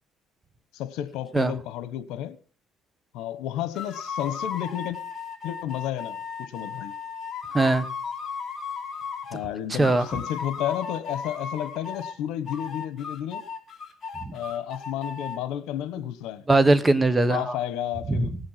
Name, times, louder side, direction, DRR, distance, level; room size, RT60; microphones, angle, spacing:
voice 1, 0.7-2.4 3.1-5.0 5.4-6.9 9.3-13.4 14.3-16.4 17.3-18.4, left 11 dB, 80° left, 1.3 m, -32 dB
sound 1, 3.7-9.4 9.8-12.2 12.5-15.4, left 6 dB, 35° left, 3.0 m, -35 dB
voice 2, 7.5-7.8 9.8-10.0 14.2-14.3 16.5-17.6 18.1-18.3, right 2 dB, 15° right, 1.1 m, -20 dB
18.0 x 8.8 x 5.9 m
cardioid pair, 115°, 0 cm